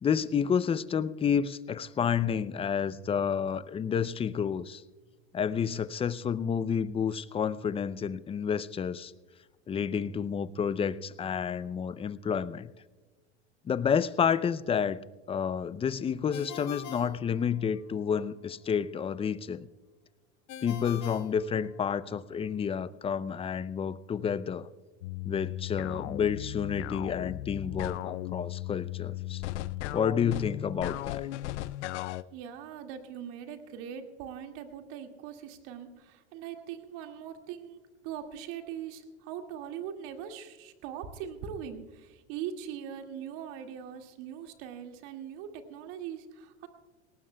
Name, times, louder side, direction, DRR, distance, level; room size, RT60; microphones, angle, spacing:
voice 1, 0.0-4.8 5.3-9.1 9.7-12.7 13.7-15.0 15.3-19.7 20.6-24.7 25.2-29.4 29.9-31.3, left 7 dB, 15° left, 17 dB, 0.4 m, -30 dB
Ringtone, 16.3-18.0 20.5-22.2, left 10 dB, 50° left, 1.4 m, -44 dB
sound 1, 25.0-32.2, left 15 dB, 85° left, 0.6 m, -36 dB
voice 2, 32.3-46.7, right 9 dB, 60° right, 5 dB, 2.1 m, -41 dB
18.5 x 18.5 x 2.2 m, 1.2 s
supercardioid pair, 110°, 34 cm